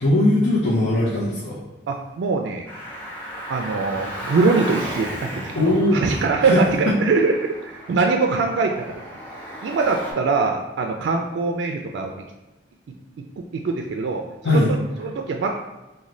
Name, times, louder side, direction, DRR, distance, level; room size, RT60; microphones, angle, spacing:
voice 1, 0.0-1.6 5.6-6.6 6.9-7.0 14.4-14.7, left 1 dB, 70° left, -7 dB, 0.6 m, -20 dB
voice 2, 1.9-2.6 3.5-8.8 9.6-12.2 13.4-15.6, right 4 dB, 85° right, 3 dB, 0.3 m, -23 dB
Car, 2.7-10.1, equal, 10° left, 0.7 m, -35 dB
3.1 x 2.1 x 3.8 m, 1.1 s
head